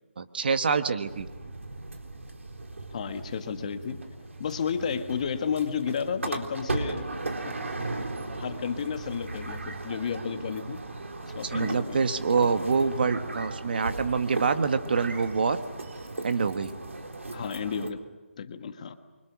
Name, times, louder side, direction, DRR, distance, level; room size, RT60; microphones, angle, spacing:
voice 1, 0.2-1.3 11.4-15.6 16.2-16.7, right 5 dB, 45° right, 9 dB, 1.5 m, -26 dB
sound 1, 1.1-17.9, right 2 dB, 80° right, 4.0 m, -37 dB
voice 2, 2.9-4.0 4.4-7.0 7.5-7.6 8.4-10.8 11.2-12.1 17.3-18.0 18.4-18.9, left 6 dB, 30° left, 8 dB, 1.5 m, -32 dB
29.5 x 24.5 x 6.2 m, 1.2 s
figure-of-eight pair, 165°, 7 cm